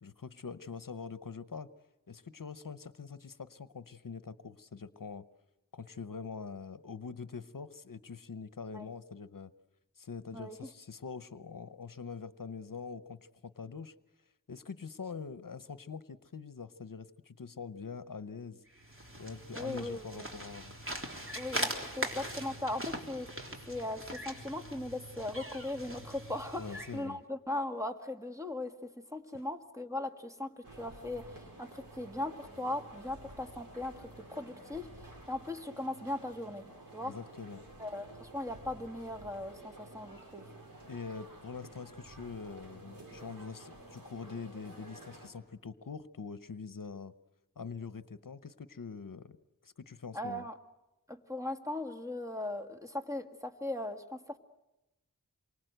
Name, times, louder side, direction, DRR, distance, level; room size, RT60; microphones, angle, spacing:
voice 1, 0.0-1.7 2.1-5.3 5.7-9.5 10.0-13.9 14.5-18.6 19.2-20.8 26.5-27.2 29.3-29.4 37.0-37.6 40.9-47.1 47.6-49.4 49.6-50.4, left 5 dB, 70° left, 14 dB, 0.8 m, -44 dB
voice 2, 10.3-10.7 19.5-20.3 21.4-23.3 23.7-36.6 36.9-37.2 37.8-40.5 50.1-50.6 51.1-54.4, left 1 dB, 10° right, 5 dB, 1.9 m, -39 dB
sound 1, 18.7-27.0, right 1 dB, 40° right, 3.6 m, -41 dB
sound 2, 30.6-45.3, right 1 dB, 90° right, 5.3 m, -51 dB
27.5 x 24.0 x 7.9 m, 0.97 s
wide cardioid pair, 50°, 34 cm